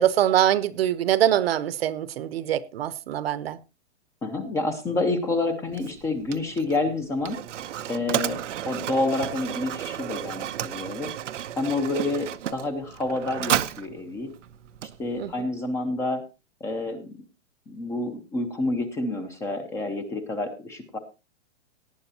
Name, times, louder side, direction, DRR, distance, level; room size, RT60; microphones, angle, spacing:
voice 1, 0.0-3.6 15.2-15.3, right 11 dB, 55° right, 0.9 m, -23 dB
voice 2, 4.2-7.4 7.9-11.1 11.6-14.3 14.8-16.2 16.6-17.1 17.7-21.0, left 2 dB, 10° left, 0.6 m, -28 dB
Mechanisms, 5.7-15.4, right 11 dB, 90° right, 0.9 m, -33 dB
18.0 x 9.9 x 2.8 m
hypercardioid pair, 160°, 36 cm